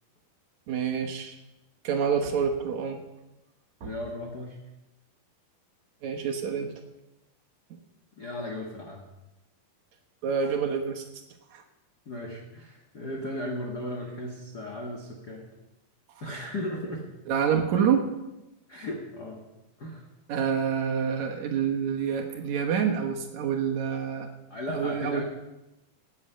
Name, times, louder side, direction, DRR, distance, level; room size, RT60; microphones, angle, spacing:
voice 1, 0.7-1.3 1.8-3.0 3.8-3.9 6.0-6.7 10.2-11.0 11.5-11.6 17.3-18.0 20.3-24.3 24.7-25.3, right 7 dB, 60° right, 3 dB, 2.1 m, -27 dB
voice 2, 3.8-4.6 8.2-9.1 12.0-15.5 16.2-17.1 18.7-19.4 19.8-20.0 24.5-25.3, left 1 dB, 70° left, 0 dB, 0.9 m, -36 dB
18.0 x 8.5 x 5.6 m, 0.98 s
omnidirectional pair, 4.4 m